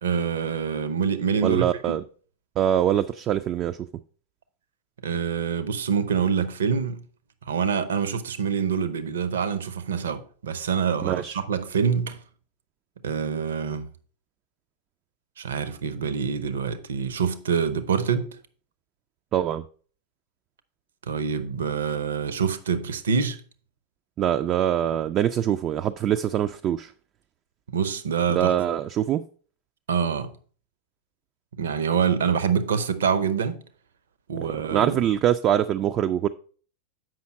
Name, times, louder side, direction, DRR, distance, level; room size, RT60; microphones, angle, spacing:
voice 1, 0.0-2.0 5.0-7.0 7.5-12.2 13.0-13.9 15.4-18.3 21.1-23.4 27.7-28.6 29.9-30.3 31.6-33.6 34.3-35.0, right 6 dB, 65° right, 0.7 m, -26 dB
voice 2, 1.4-2.0 2.6-3.8 11.0-11.4 19.3-19.6 24.2-26.9 28.3-29.2 34.4-36.3, right 10 dB, 30° right, 0.3 m, -24 dB
7.5 x 5.6 x 4.3 m
figure-of-eight pair, 90°, 0 cm